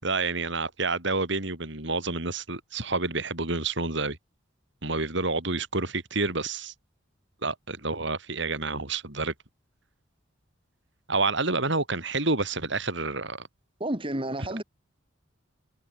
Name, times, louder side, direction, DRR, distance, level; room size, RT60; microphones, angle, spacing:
voice 1, 0.0-4.2 4.8-6.7 7.4-9.3 11.1-13.5, right 3 dB, 65° right, 4.6 m, -28 dB
voice 2, 13.8-14.6, right 1 dB, 25° right, 3.6 m, -30 dB
head